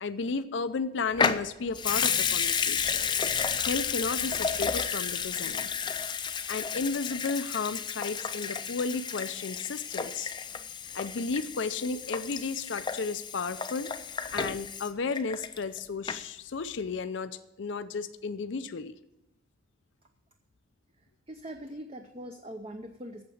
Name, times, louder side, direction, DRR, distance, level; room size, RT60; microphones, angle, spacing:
voice 1, 0.0-3.1 3.6-5.7 6.5-10.3 10.9-13.9 14.3-19.0, left 4 dB, 75° left, 11 dB, 0.5 m, -33 dB
Water tap faucet / Sink (filling or washing) / Liquid, 1.1-15.8 16.1-16.2, left 6 dB, 25° left, 0.5 m, -32 dB
voice 2, 21.3-23.2, right 1 dB, 30° right, 6 dB, 0.6 m, -42 dB
8.6 x 7.3 x 7.8 m, 0.91 s
head